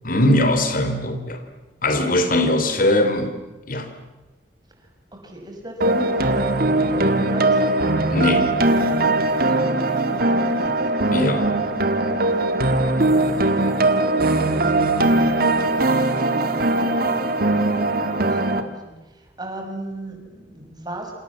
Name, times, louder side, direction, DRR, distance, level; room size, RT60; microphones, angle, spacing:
voice 1, 0.0-1.4 1.8-3.3 3.7-3.9 8.1-8.5 11.1-11.5, left 1 dB, 55° left, 8 dB, 3.3 m, -20 dB
voice 2, 5.1-7.6 9.4-10.8 13.3-13.7 16.7-17.1 17.9-21.1, right 1 dB, 25° right, 3 dB, 6.1 m, -36 dB
sound 1, 5.8-18.6, right 2 dB, 55° right, 2.3 m, -20 dB
29.0 x 27.5 x 7.5 m, 1.1 s
head